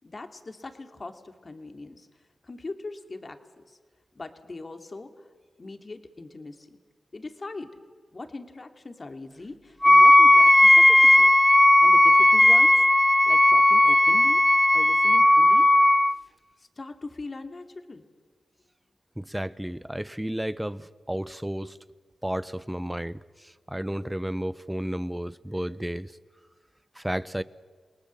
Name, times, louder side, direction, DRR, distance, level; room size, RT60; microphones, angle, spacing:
voice 1, 0.0-2.1 2.4-3.4 3.7-3.8 4.1-5.2 5.6-6.8 7.1-7.8 8.1-11.3 11.8-12.7 13.2-14.4 14.7-15.7 16.6-18.0, left 3 dB, 45° left, 7 dB, 2.7 m, -40 dB
Wind instrument woodwind instrument, 9.8-16.2, left 1 dB, 15° left, 0.6 m, -16 dB
voice 2, 19.2-21.8 22.2-26.1 26.9-27.4, right 1 dB, 10° right, 16 dB, 1.0 m, -32 dB
29.0 x 19.0 x 7.6 m, 1.5 s
cardioid pair, 40°, 0 cm